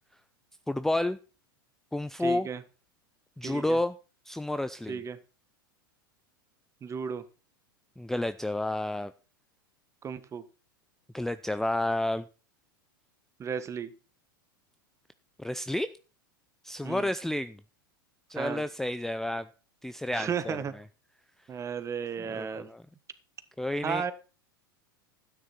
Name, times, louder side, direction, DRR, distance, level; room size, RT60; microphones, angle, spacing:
voice 1, 0.7-1.2 1.9-2.5 3.4-3.9 4.3-5.0 8.0-9.1 11.1-12.2 15.4-15.9 16.6-17.6 18.3-19.5 19.8-20.6 22.2-22.8 23.6-24.1, left 1 dB, 5° left, 13 dB, 0.5 m, -30 dB
voice 2, 2.2-2.6 3.4-3.8 4.9-5.2 6.8-7.2 10.0-10.4 13.4-13.9 16.8-17.1 18.3-18.6 20.1-20.7 21.5-22.7 23.8-24.1, right 7 dB, 25° right, 13 dB, 1.4 m, -34 dB
12.5 x 9.7 x 4.4 m, 0.35 s
hypercardioid pair, 95°, 12 cm